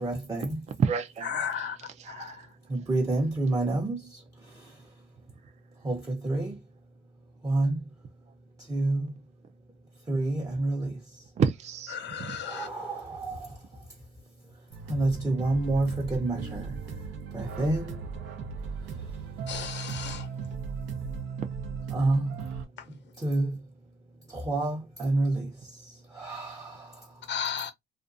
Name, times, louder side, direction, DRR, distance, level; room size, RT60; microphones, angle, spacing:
voice 1, 0.0-0.6 2.7-4.2 4.5-4.7 5.8-6.5 7.4-7.8 8.6-9.1 10.1-11.0 12.4-13.6 14.9-16.8 17.3-18.1 21.9-22.3 23.2-23.6 24.3-27.1, right 2 dB, 15° right, 0.7 m, -29 dB
voice 2, 0.8-2.5 11.4-12.4 13.1-13.3 13.7-13.8, right 6 dB, 35° right, 0.4 m, -31 dB
voice 3, 1.3-1.8 2.1-2.3 11.9-12.7 19.5-20.3 27.3-27.7, left 8 dB, 65° left, 0.5 m, -34 dB
sound 1, 14.7-22.7, right 5 dB, 80° right, 0.8 m, -37 dB
2.5 x 2.3 x 2.5 m
cardioid pair, 90°, 20 cm